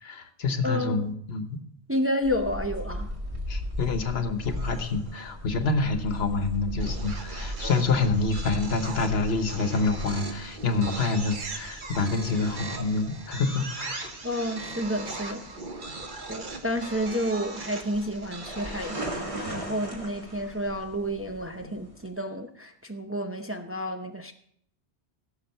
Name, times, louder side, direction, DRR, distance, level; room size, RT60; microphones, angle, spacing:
voice 1, 0.0-1.6 3.5-14.1, left 3 dB, 75° left, 8 dB, 1.3 m, -27 dB
voice 2, 0.6-1.1 1.9-3.1 14.2-15.5 16.3-24.3, equal, 15° right, 5 dB, 0.6 m, -30 dB
sound 1, 2.2-22.1, equal, 30° right, 2.2 m, -39 dB
sound 2, 4.5-5.3 6.8-19.8, right 3 dB, 50° right, 1.2 m, -40 dB
16.5 x 7.0 x 4.4 m, 0.64 s
omnidirectional pair, 1.1 m